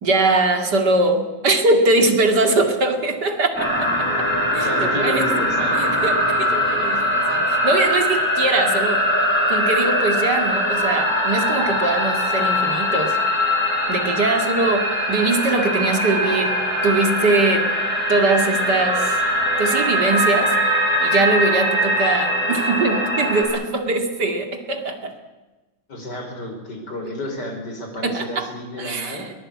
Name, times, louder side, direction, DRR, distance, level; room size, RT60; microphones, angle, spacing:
voice 1, 0.0-4.2 4.5-5.3 5.7-9.0 9.5-13.2 13.9-16.6 16.8-17.7 18.1-19.2 19.6-20.6 21.0-25.1 28.0-28.5 28.8-29.3, right 2 dB, 60° right, 5 dB, 2.8 m, -21 dB
sound 1, 3.6-23.4, equal, 5° left, 7.3 m, -21 dB
voice 2, 4.5-5.8 25.9-29.3, left 1 dB, 60° left, 3 dB, 5.5 m, -31 dB
22.5 x 19.5 x 8.6 m, 1.2 s
omnidirectional pair, 2.1 m